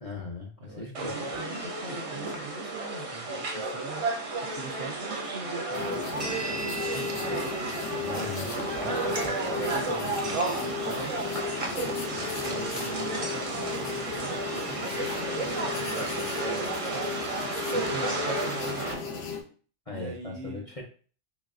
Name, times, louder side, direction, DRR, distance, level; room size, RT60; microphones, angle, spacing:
voice 1, 0.0-1.3 8.0-8.5 19.9-20.8, left 3 dB, 40° left, -1 dB, 0.6 m, -38 dB
voice 2, 0.6-4.0 4.5-8.1 8.6-11.3 11.6-17.4 17.7-19.3 19.9-20.8, right 3 dB, 60° right, 4 dB, 0.9 m, -42 dB
sound 1, 0.9-18.9, right 2 dB, 40° right, 0.6 m, -32 dB
sound 2, 5.7-19.4, left 6 dB, 80° left, 1.0 m, -35 dB
4.0 x 3.4 x 2.4 m, 0.40 s
omnidirectional pair, 1.2 m